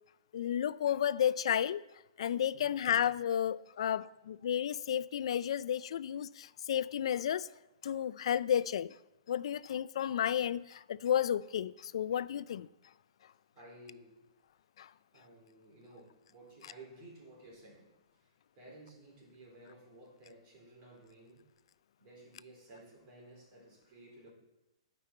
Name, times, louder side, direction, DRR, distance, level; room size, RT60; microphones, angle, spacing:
voice 1, 0.3-1.8 2.2-7.5 7.8-9.0 9.3-12.7 14.8-14.9, left 9 dB, 70° left, 0.3 m, -32 dB
voice 2, 13.5-14.2 15.1-18.3 18.6-21.4 22.0-24.3, right 1 dB, 40° right, 3.7 m, -55 dB
12.5 x 5.3 x 4.2 m
hypercardioid pair, 135°, 3 cm